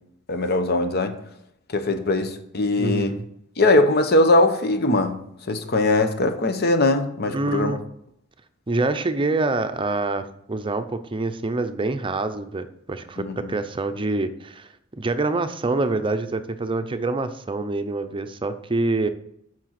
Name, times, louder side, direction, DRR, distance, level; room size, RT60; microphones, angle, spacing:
voice 1, 0.3-1.1 1.7-3.1 3.6-5.2 5.5-7.7 13.2-13.4, left 2 dB, 55° left, 8 dB, 0.9 m, -20 dB
voice 2, 2.8-3.2 7.3-7.8 8.7-14.7 15.0-19.1, right 2 dB, 25° right, 9 dB, 0.6 m, -26 dB
7.4 x 6.0 x 5.8 m, 0.74 s
head